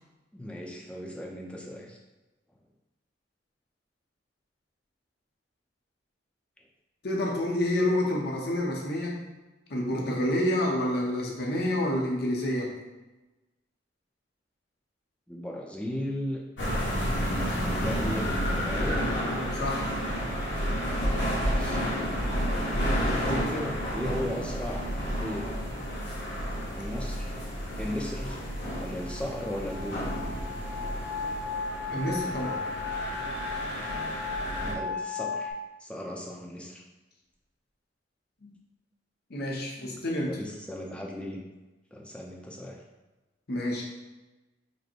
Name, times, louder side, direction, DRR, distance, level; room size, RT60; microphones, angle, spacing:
voice 1, 0.3-2.0 15.3-16.4 17.1-19.0 21.3-21.8 23.1-24.9 25.2-25.5 26.8-27.3 27.8-28.4 28.8-30.1 34.5-35.5 35.8-36.8 39.8-41.4 41.9-42.8, left 1 dB, 5° left, -1 dB, 0.6 m, -36 dB
voice 2, 7.0-9.2 9.7-12.7 19.6-19.9 31.9-32.6 38.4-38.5 39.3-40.4 43.5-43.8, left 1 dB, 60° left, -1 dB, 0.9 m, -28 dB
sound 1, 16.6-34.7, equal, 75° left, 1.5 m, -31 dB
sound 2, 28.4-35.5, left 4 dB, 40° right, 0.9 m, -36 dB
5.2 x 2.2 x 4.5 m, 1.1 s
head